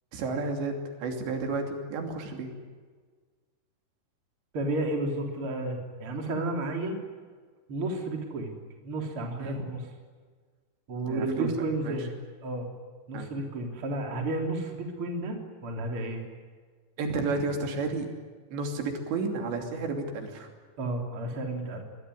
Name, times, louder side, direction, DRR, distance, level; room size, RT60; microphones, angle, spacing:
voice 1, 0.1-2.5 9.4-9.6 11.0-11.5 11.9-12.0 13.1-13.3 17.0-18.1 18.5-20.5, right 3 dB, 80° right, 3 dB, 5.1 m, -31 dB
voice 2, 4.5-7.0 7.7-8.5 8.8-9.9 10.9-12.1 12.4-12.7 13.1-16.2 20.8-21.8, right 2 dB, 30° right, 2 dB, 3.8 m, -32 dB
25.0 x 21.0 x 9.9 m, 1.6 s
omnidirectional pair, 5.0 m